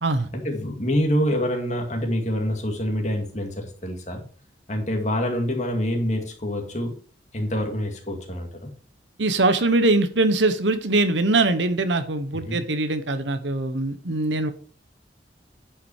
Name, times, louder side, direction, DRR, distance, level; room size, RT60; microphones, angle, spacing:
voice 1, 0.3-4.2 4.7-7.0 7.3-8.7 12.3-12.6, equal, 40° left, 2 dB, 2.3 m, -26 dB
voice 2, 9.2-14.5, right 2 dB, 85° right, 10 dB, 1.1 m, -22 dB
9.8 x 6.0 x 4.9 m, 0.42 s
head